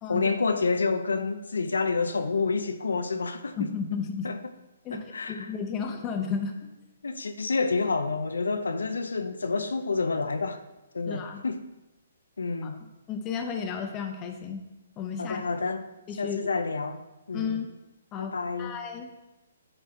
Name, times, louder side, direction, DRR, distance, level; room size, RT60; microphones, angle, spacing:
voice 1, 0.1-3.7 4.2-4.4 4.9-5.5 7.0-10.6 10.9-11.6 12.4-12.7 15.2-15.8 16.2-17.0 17.3-17.6 18.2-18.8, left 4 dB, 85° left, 0.5 m, -28 dB
voice 2, 3.6-4.3 4.8-6.5 11.1-11.4 12.6-12.8 13.1-14.6 15.0-15.4 16.1-16.4 17.3-17.7 18.1-18.3 18.6-19.1, left 6 dB, 25° left, 0.8 m, -33 dB
9.5 x 3.5 x 4.2 m
hypercardioid pair, 145°, 0 cm